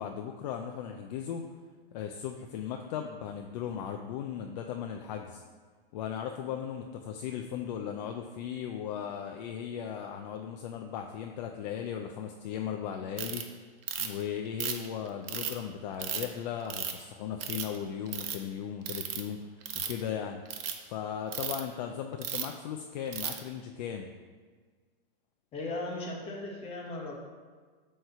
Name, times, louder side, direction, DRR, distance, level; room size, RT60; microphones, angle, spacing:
voice 1, 0.0-1.4 1.9-5.4 5.9-13.5 14.0-19.4 19.7-20.4 20.9-24.1, left 8 dB, 50° left, 4 dB, 0.5 m, -37 dB
Ratchet pawl, 13.2-13.4 13.9-14.2 14.6-15.5 16.0-16.3 16.7-17.0 17.4-17.8 18.1-18.4 18.9-19.2 19.6-20.0 20.5-20.7 21.3-21.6 22.2-22.5 23.1-23.4, right 9 dB, 75° right, 0.9 m, -34 dB
voice 2, 25.5-27.1, left 2 dB, 20° left, -1 dB, 1.2 m, -37 dB
7.9 x 3.2 x 5.5 m, 1.5 s
supercardioid pair, 155°, 29 cm